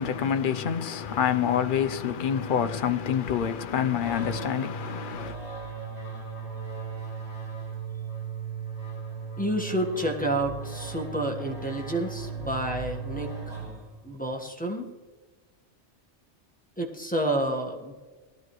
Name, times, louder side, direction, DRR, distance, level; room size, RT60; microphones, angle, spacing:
voice 1, 0.0-5.4, left 8 dB, 50° left, 0.7 m, -27 dB
sound 1, 3.9-14.2, right 5 dB, 35° right, 4.8 m, -37 dB
voice 2, 9.4-13.3 14.0-14.9 16.8-17.9, right 1 dB, 5° left, 1.4 m, -29 dB
19.0 x 13.5 x 3.2 m
omnidirectional pair, 1.2 m